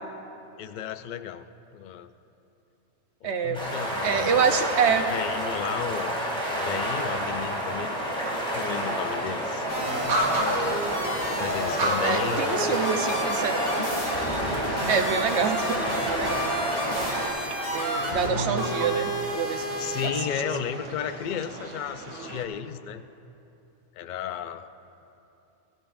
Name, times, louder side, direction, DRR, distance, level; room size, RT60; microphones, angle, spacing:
voice 1, 0.6-1.5 1.7-2.1 3.2-4.6 4.9-6.2 6.5-8.2 8.5-9.7 11.4-12.5 18.0-18.1 19.8-23.0 24.0-24.7, left 9 dB, 60° left, 11 dB, 0.5 m, -34 dB
voice 2, 3.2-3.6 4.0-5.1 12.0-13.6 14.9-16.5 17.7-19.7 20.0-20.1, right 6 dB, 65° right, 6 dB, 1.0 m, -26 dB
sound 1, 3.5-17.3, equal, 5° left, 3.5 m, -30 dB
sound 2, 9.7-20.1, equal, 45° left, 2.7 m, -31 dB
sound 3, 9.7-22.4, right 2 dB, 85° right, 1.4 m, -34 dB
23.5 x 14.0 x 2.5 m, 2.9 s
omnidirectional pair, 1.3 m